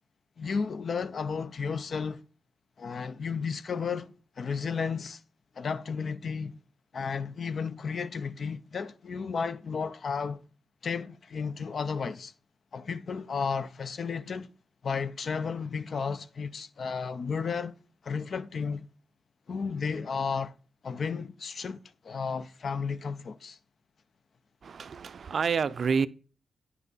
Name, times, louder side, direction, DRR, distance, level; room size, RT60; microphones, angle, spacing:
voice 1, 0.4-2.2 2.8-4.1 4.4-5.2 5.6-6.6 6.9-10.4 10.8-12.3 12.7-14.5 14.8-17.8 18.0-18.9 19.5-20.5 20.8-23.6, left 5 dB, 55° left, 0.5 m, -33 dB
voice 2, 24.6-26.1, right 6 dB, 55° right, 0.4 m, -28 dB
9.4 x 5.9 x 3.9 m
cardioid pair, 95°, 0 cm